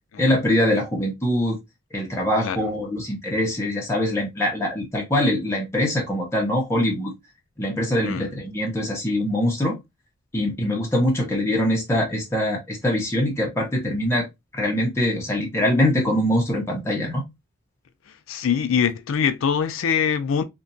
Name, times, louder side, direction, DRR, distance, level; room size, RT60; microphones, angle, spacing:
voice 1, 0.2-1.6 1.9-7.1 7.6-9.8 10.3-14.3 14.5-17.2, left 1 dB, 15° left, 0.7 m, -23 dB
voice 2, 18.3-20.4, left 7 dB, 80° left, 0.4 m, -23 dB
2.8 x 2.2 x 2.5 m
head